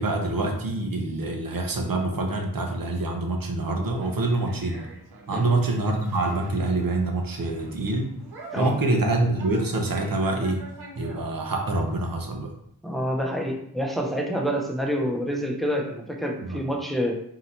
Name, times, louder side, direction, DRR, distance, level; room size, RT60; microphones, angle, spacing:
voice 1, 0.0-4.8 5.3-8.1 8.6-10.6 11.0-12.5 16.4-16.6, right 2 dB, 60° right, 3 dB, 0.9 m, -26 dB
Conversation, 3.7-12.1, right 1 dB, 80° right, 1.1 m, -46 dB
voice 2, 12.8-17.2, equal, ahead, 0 dB, 0.7 m, -27 dB
3.9 x 2.9 x 4.3 m, 0.71 s
wide cardioid pair, 100°, 38 cm